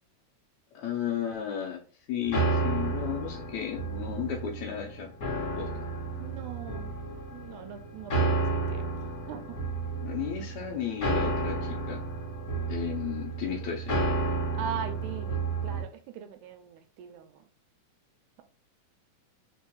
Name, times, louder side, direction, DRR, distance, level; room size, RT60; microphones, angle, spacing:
voice 1, 0.7-1.8 2.1-5.1 5.6-5.7 10.0-12.0 12.7-14.0, left 9 dB, 70° left, 1.9 m, -34 dB
sound 1, 2.2-15.8, right 3 dB, 50° left, 1.1 m, -31 dB
voice 2, 6.2-6.9 7.3-8.4 8.7-8.9 9.3-9.4 14.6-17.3, right 8 dB, 80° right, 2.0 m, -40 dB
4.4 x 4.4 x 2.3 m
omnidirectional pair, 3.7 m